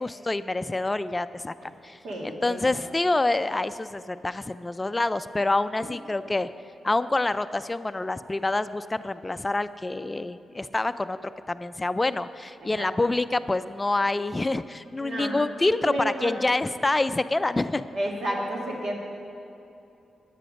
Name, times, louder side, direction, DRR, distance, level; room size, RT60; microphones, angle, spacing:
voice 1, 0.0-1.5 1.8-6.5 6.8-17.9, left 2 dB, 25° left, 13 dB, 0.3 m, -27 dB
voice 2, 2.0-2.6 5.8-5.9 12.6-12.9 15.0-15.4 15.8-16.4 17.9-18.9, right 1 dB, 75° right, -1 dB, 1.9 m, -31 dB
9.9 x 9.1 x 5.2 m, 2.8 s
supercardioid pair, 55°, 0 cm